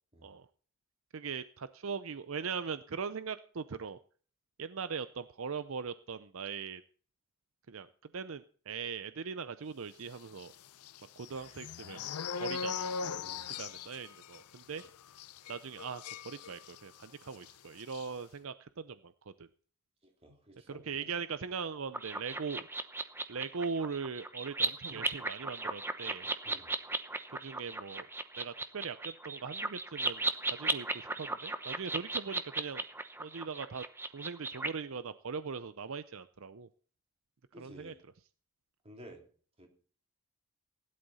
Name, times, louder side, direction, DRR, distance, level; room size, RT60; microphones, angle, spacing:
voice 1, 1.1-4.0 4.6-6.8 7.7-7.9 8.1-10.5 11.2-12.0 12.4-13.0 13.4-14.8 15.5-19.5 20.7-22.7 23.3-26.3 27.4-28.1 28.4-30.2 30.6-32.8 33.2-33.8 34.1-36.7 37.6-37.9, right 5 dB, 65° right, 13 dB, 0.6 m, -40 dB
sound 1, 10.3-17.0 17.3-17.5 17.8-18.1, left 5 dB, 85° left, 0.6 m, -41 dB
voice 2, 20.2-21.1 24.9-25.0 26.4-26.7 31.9-32.0 37.5-38.0 38.8-39.2 39.6-39.7, equal, 25° right, 2 dB, 3.2 m, -53 dB
sound 2, 21.9-34.7, right 2 dB, 10° right, 0.9 m, -36 dB
16.5 x 11.0 x 4.2 m, 0.43 s
head